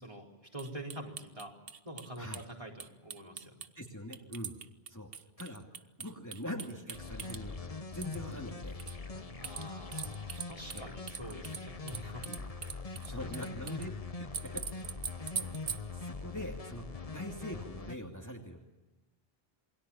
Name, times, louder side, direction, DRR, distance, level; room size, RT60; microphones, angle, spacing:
voice 1, 0.5-1.5 1.8-3.7 9.4-12.3 12.8-13.3 17.1-17.2, right 1 dB, 30° right, -1 dB, 4.5 m, -46 dB
sound 1, 0.6-2.4 2.8-3.7 4.1-7.4 7.9-8.3 8.8-9.0 9.4-10.8 11.1-13.9 14.3-15.8, right 7 dB, 70° right, 1.2 m, -41 dB
voice 2, 3.8-4.6 4.9-5.1 5.4-5.7 6.0-8.8 10.7-11.0 12.3-12.5 13.0-14.9 15.2-15.6 15.9-18.6, left 1 dB, 15° left, 0 dB, 2.8 m, -43 dB
sound 2, 6.9-17.9, left 4 dB, 35° left, 1.2 m, -42 dB
28.0 x 22.5 x 7.2 m, 1.1 s
omnidirectional pair, 1.0 m